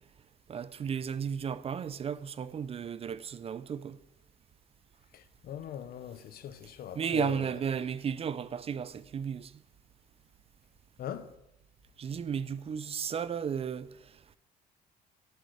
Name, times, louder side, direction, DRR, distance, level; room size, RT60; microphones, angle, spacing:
voice 1, 0.5-4.0 6.9-9.5 12.0-14.4, right 7 dB, 35° right, 0.5 m, -34 dB
voice 2, 5.1-7.5 11.0-11.4, left 9 dB, 60° left, 0.9 m, -41 dB
8.0 x 7.9 x 8.4 m
cardioid pair, 110°, 17 cm